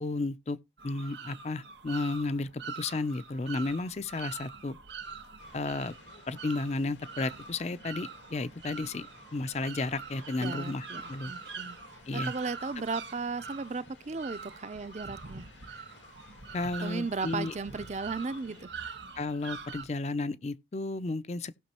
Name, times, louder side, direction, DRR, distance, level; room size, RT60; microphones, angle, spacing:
voice 1, 0.0-0.6 0.8-2.5 2.7-4.8 5.5-6.0 6.3-11.3 12.1-12.3 16.5-17.5 19.2-21.6, left 3 dB, 35° left, 0.4 m, -33 dB
sound 1, 0.8-19.9, right 5 dB, 85° right, 1.9 m, -44 dB
sound 2, 5.4-18.7, left 3 dB, 90° left, 2.2 m, -56 dB
voice 2, 10.4-11.8 12.1-15.8 16.8-18.7, right 4 dB, 40° right, 0.5 m, -36 dB
17.0 x 6.1 x 2.9 m
head